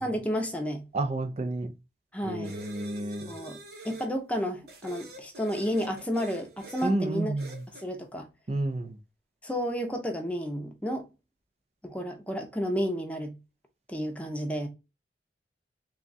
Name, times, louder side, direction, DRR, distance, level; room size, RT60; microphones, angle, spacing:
voice 1, 0.0-0.8 2.1-2.6 3.3-3.6 3.8-7.3 7.8-8.3 9.4-11.1 11.8-13.4 13.9-14.7, equal, 10° left, 0.7 m, -31 dB
voice 2, 0.9-1.7 2.3-3.3 6.8-7.6 8.5-8.9, right 2 dB, 35° right, 0.4 m, -30 dB
sound 1, 2.4-4.1 4.7-6.9 7.4-7.9, right 2 dB, 60° right, 1.0 m, -46 dB
3.5 x 2.3 x 3.9 m
head